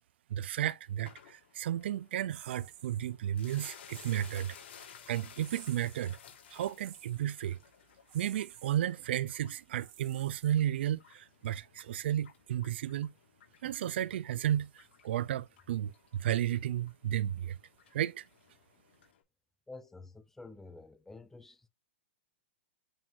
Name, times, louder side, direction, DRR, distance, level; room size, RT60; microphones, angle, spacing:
voice 1, 0.3-4.6 5.1-6.2 6.5-7.6 8.1-13.1 13.6-17.6 17.9-18.3, right 11 dB, 60° right, 0.6 m, -33 dB
sound 1, 1.0-19.2, left 8 dB, 70° left, 3.2 m, -57 dB
sound 2, 2.3-3.1 3.9-4.5 5.4-6.2 6.7-7.2 8.1-8.8 9.7-10.8, right 13 dB, 35° right, 2.2 m, -53 dB
voice 2, 19.7-21.7, left 3 dB, 5° left, 0.6 m, -50 dB
9.0 x 4.5 x 2.5 m
hypercardioid pair, 160°, 7 cm